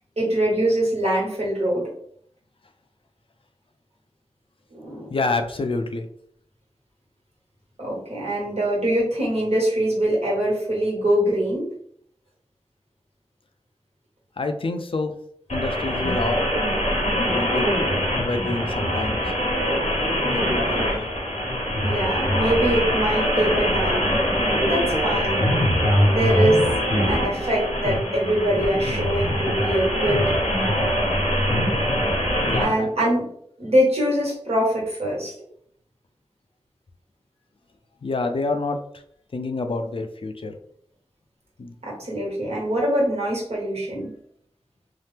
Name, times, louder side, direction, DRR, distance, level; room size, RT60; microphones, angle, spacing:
voice 1, 0.2-1.9 4.7-5.1 7.8-11.7 20.6-20.9 21.8-24.1 24.6-25.7 26.1-26.6 27.1-30.2 32.6-33.3 33.6-35.3 41.8-44.1, right 1 dB, 70° right, -4 dB, 1.3 m, -23 dB
voice 2, 5.1-6.1 14.4-15.1 15.5-16.4 17.2-17.8 18.2-19.2 20.2-21.0 32.4-32.9 38.0-38.8 39.3-40.5 41.6-41.7, left 3 dB, 55° left, 6 dB, 0.4 m, -27 dB
sound 1, 15.5-32.6, equal, 80° left, 0.9 m, -23 dB
2.8 x 2.0 x 3.3 m, 0.66 s
wide cardioid pair, 45°, 11 cm